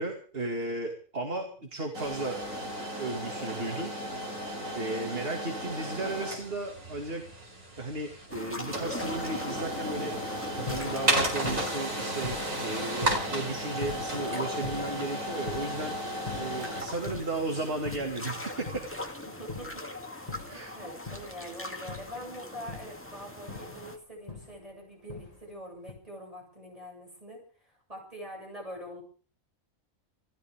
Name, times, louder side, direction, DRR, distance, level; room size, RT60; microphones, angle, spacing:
voice 1, 0.0-2.4 3.0-3.9 4.7-7.2 7.8-15.9 16.3-18.8 20.5-20.7, right 2 dB, 45° right, 2 dB, 2.7 m, -35 dB
voice 2, 1.2-1.7 19.2-19.8 20.2-27.4 27.9-29.0, equal, 25° right, -1 dB, 7.9 m, -44 dB
sound 1, 1.9-18.8, right 1 dB, 75° right, 5.0 m, -34 dB
sound 2, 8.3-24.0, left 1 dB, 10° left, 1.9 m, -41 dB
sound 3, 10.6-14.2 14.6-16.7 17.0-17.5 17.9-20.7 21.1-21.5 21.9-23.1 23.5-23.9 24.3-24.7 25.1-25.5 25.8-25.9, left 4 dB, 25° left, 3.3 m, -42 dB
28.0 x 13.5 x 3.7 m, 0.42 s
omnidirectional pair, 1.4 m